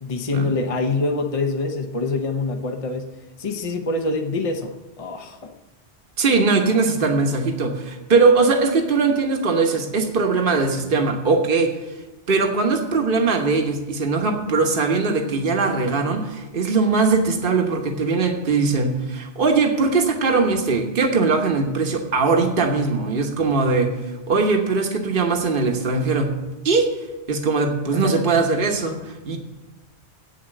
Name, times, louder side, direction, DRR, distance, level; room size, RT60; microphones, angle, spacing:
voice 1, 0.0-5.5 27.9-28.2, left 3 dB, 35° left, 5 dB, 0.8 m, -25 dB
voice 2, 6.2-11.7 12.3-23.9 24.3-26.3 26.6-26.9 27.3-29.4, right 4 dB, 55° right, 3 dB, 1.4 m, -20 dB
8.7 x 7.3 x 8.9 m, 1.1 s
omnidirectional pair, 1.1 m